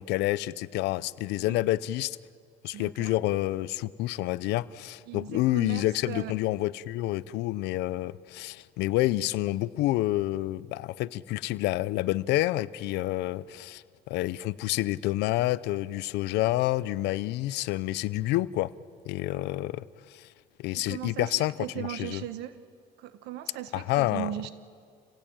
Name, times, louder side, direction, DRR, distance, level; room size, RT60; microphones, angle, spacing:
voice 1, 0.0-2.2 2.6-18.7 19.1-20.3 20.6-22.2 23.7-24.3, left 17 dB, 90° left, 0.6 m, -28 dB
voice 2, 2.7-3.1 5.1-6.3 20.7-22.5 23.0-24.5, right 12 dB, 85° right, 1.3 m, -38 dB
28.5 x 17.0 x 8.9 m
cardioid pair, 110°, 17 cm